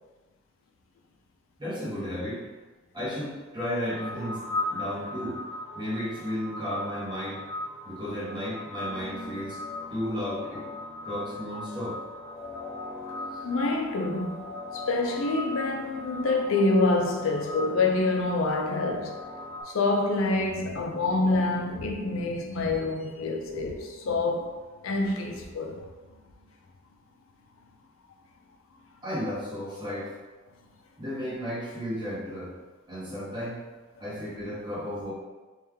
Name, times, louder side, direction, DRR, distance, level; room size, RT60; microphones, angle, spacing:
voice 1, 1.6-2.5 2.9-4.4 4.7-5.4 5.7-7.5 7.8-9.6 9.9-10.7 11.0-12.0 13.3-13.4 29.0-30.1 31.0-32.5 32.9-33.7 34.0-35.1, equal, 25° right, 1.2 m, -33 dB
sound 1, 3.8-19.6, left 1 dB, 20° left, 0.6 m, -38 dB
voice 2, 13.4-14.4 14.7-19.2 19.7-24.5 24.8-25.8, left 2 dB, 90° left, 0.5 m, -26 dB
3.2 x 3.1 x 3.5 m
head